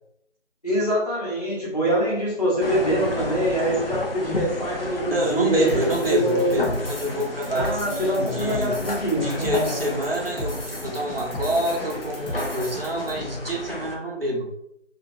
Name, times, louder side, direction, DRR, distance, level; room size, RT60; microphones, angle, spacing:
voice 1, 0.6-6.6 7.5-9.9, right 1 dB, 30° left, -7 dB, 1.0 m, -24 dB
sound 1, 2.6-13.9, left 2 dB, 50° left, 0.6 m, -33 dB
voice 2, 5.1-8.8 9.1-14.5, right 1 dB, 50° right, -1 dB, 0.7 m, -27 dB
sound 2, 5.7-13.1, left 1 dB, 70° left, 1.1 m, -35 dB
2.7 x 2.4 x 3.0 m, 0.79 s
figure-of-eight pair, 170°, 37 cm